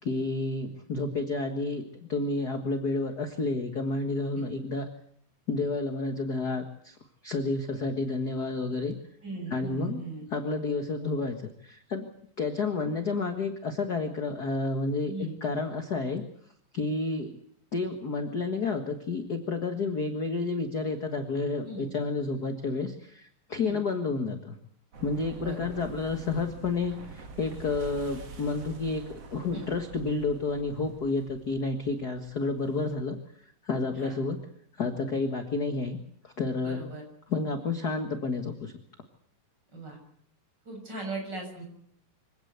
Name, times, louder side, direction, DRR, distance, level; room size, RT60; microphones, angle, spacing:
voice 1, 0.0-1.8 2.1-4.9 5.5-7.0 7.2-8.9 9.5-10.0 10.3-12.1 12.4-16.2 16.7-17.4 17.7-24.6 25.0-29.0 29.3-33.2 33.6-34.4 34.8-36.0 36.2-36.8 37.3-38.7, left 3 dB, 45° left, 6 dB, 1.4 m, -30 dB
voice 2, 9.2-10.3 15.1-15.4 21.6-21.9 23.6-23.8 25.4-25.8 29.5-29.7 34.0-34.2 36.6-37.0 39.7-40.0 40.7-41.6, right 3 dB, 30° right, 2 dB, 7.3 m, -39 dB
sound 1, 24.9-33.0, right 4 dB, 45° right, 3.2 m, -46 dB
25.5 x 17.5 x 8.2 m, 0.66 s
omnidirectional pair, 4.1 m